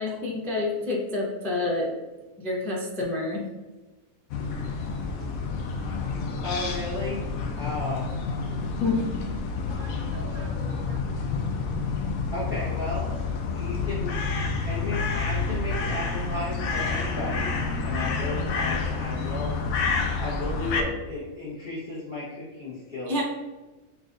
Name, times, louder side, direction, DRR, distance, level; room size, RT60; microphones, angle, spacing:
voice 1, 0.0-1.9 2.4-3.4 8.8-9.0 23.1-23.2, left 2 dB, 5° left, -4 dB, 0.3 m, -27 dB
voice 2, 0.5-0.8 4.8-5.3 9.7-11.0, right 5 dB, 70° right, 4 dB, 0.9 m, -48 dB
sound 1, 4.3-20.8, left 4 dB, 75° left, 1.0 m, -29 dB
voice 3, 6.4-7.3 7.6-8.1 12.3-13.1 13.5-17.5 17.8-19.6 20.2-23.2, left 2 dB, 45° left, -10 dB, 1.3 m, -34 dB
6.2 x 2.5 x 2.5 m, 1.2 s
omnidirectional pair, 1.5 m